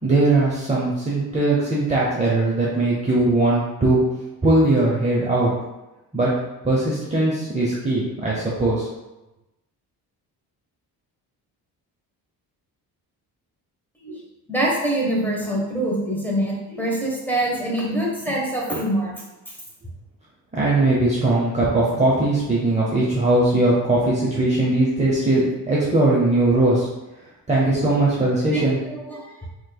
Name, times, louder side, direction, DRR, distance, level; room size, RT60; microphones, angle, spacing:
voice 1, 0.0-4.0 4.4-5.5 6.1-6.3 6.6-8.9 20.5-26.9 27.5-28.8, right 2 dB, 20° right, -6 dB, 0.7 m, -20 dB
voice 2, 14.5-19.1 19.5-19.6 28.5-29.5, right 1 dB, 5° left, -4 dB, 1.1 m, -25 dB
3.5 x 3.1 x 2.3 m, 0.99 s
cardioid pair, 80°, 39 cm